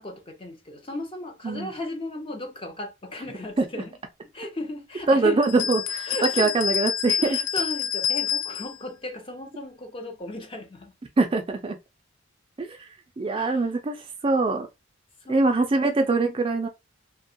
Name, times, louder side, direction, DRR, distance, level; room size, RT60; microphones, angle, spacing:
voice 1, 0.0-3.9 4.3-5.5 6.1-6.5 7.2-10.9 13.3-13.6 15.3-15.9, left 1 dB, 25° left, 0.6 m, -36 dB
voice 2, 5.1-7.4 11.2-11.8 12.6-12.8 13.2-14.0 14.2-14.7 15.3-16.7, right 3 dB, 25° right, 0.4 m, -23 dB
sound 1, 5.4-8.8, left 8 dB, 75° left, 0.4 m, -27 dB
2.8 x 2.2 x 2.6 m
head